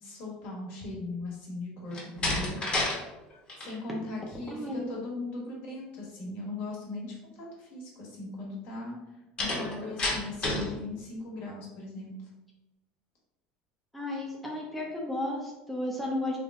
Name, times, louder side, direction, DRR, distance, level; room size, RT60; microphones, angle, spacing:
voice 1, 0.0-2.6 3.6-9.0 9.4-12.1, left 2 dB, 60° left, -3 dB, 1.4 m, -39 dB
Slam, 1.9-3.0 3.3-3.8 9.4-10.7, left 2 dB, 30° left, 1.1 m, -30 dB
voice 2, 4.5-4.9 13.9-16.4, left 1 dB, ahead, -3 dB, 0.6 m, -33 dB
3.4 x 2.1 x 3.6 m, 1.0 s
supercardioid pair, 115°, 4 cm